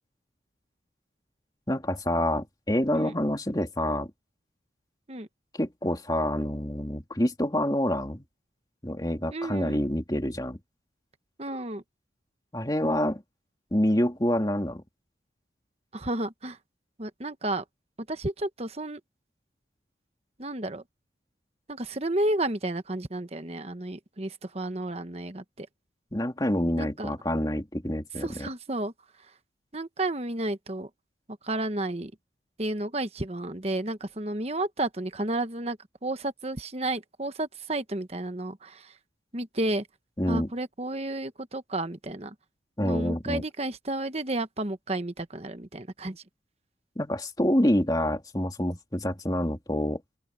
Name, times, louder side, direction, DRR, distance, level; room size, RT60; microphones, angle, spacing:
voice 1, 1.7-4.1 5.5-8.2 8.8-10.6 12.5-13.2 13.7-14.8 26.1-28.5 40.2-40.5 42.8-43.4 47.0-50.0, left 1 dB, 20° left, 2.8 m, -27 dB
voice 2, 9.3-9.8 11.4-11.8 15.9-16.6 17.0-17.6 18.1-19.0 20.4-20.8 21.7-25.7 26.8-27.1 28.2-28.9 29.2-29.3 29.7-30.9 31.4-32.1 32.6-39.0 39.3-39.9 40.3-42.3 42.8-46.2, right 2 dB, 35° right, 1.1 m, -32 dB
open air
head